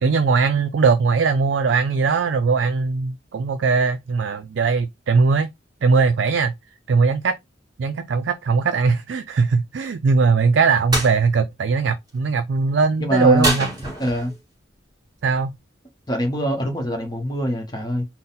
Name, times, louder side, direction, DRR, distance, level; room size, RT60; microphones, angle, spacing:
voice 1, 0.0-5.5 5.8-6.5 6.9-7.3 7.8-13.7 15.2-15.5, right 4 dB, 65° right, 0.4 m, -20 dB
sound 1, 10.9-11.1 13.4-14.4, right 1 dB, 20° right, 2.0 m, -24 dB
voice 2, 13.0-14.3 16.1-18.1, equal, 20° left, 1.2 m, -24 dB
3.9 x 2.1 x 4.0 m
head